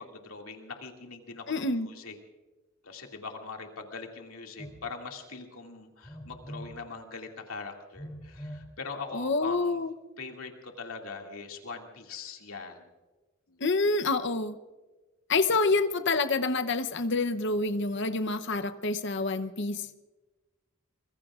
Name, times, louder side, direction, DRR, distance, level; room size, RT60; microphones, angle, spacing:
voice 1, 0.0-2.2 2.8-9.8 10.2-12.8 13.5-13.6, left 4 dB, 85° left, 2 dB, 2.3 m, -42 dB
voice 2, 1.5-1.9 9.1-9.9 13.6-14.6 15.3-19.8, left 3 dB, 55° left, 10 dB, 0.8 m, -27 dB
Telephone, 4.6-4.8 6.0-6.8 7.9-8.7, equal, 20° left, 3.2 m, -42 dB
24.5 x 22.0 x 2.5 m, 1.2 s
head